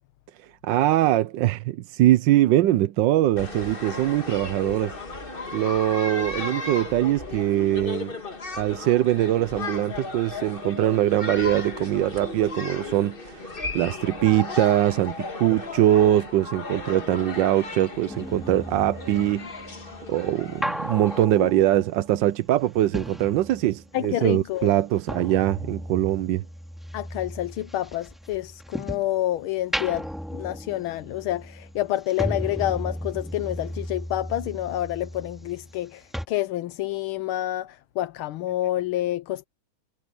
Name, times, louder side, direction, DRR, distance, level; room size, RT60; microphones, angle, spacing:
voice 1, 0.6-5.0 5.5-8.2 8.6-19.5 20.1-26.4, right 13 dB, 70° right, 1.3 m, -22 dB
sound 1, 3.4-21.2, left 3 dB, 30° left, 1.7 m, -35 dB
sound 2, 18.1-24.1 24.3-29.2 29.6-35.9 36.1-36.3, equal, ahead, 2.2 m, -35 dB
voice 2, 23.9-24.7 26.9-39.4, left 14 dB, 90° left, 1.6 m, -28 dB
omnidirectional pair, 2.2 m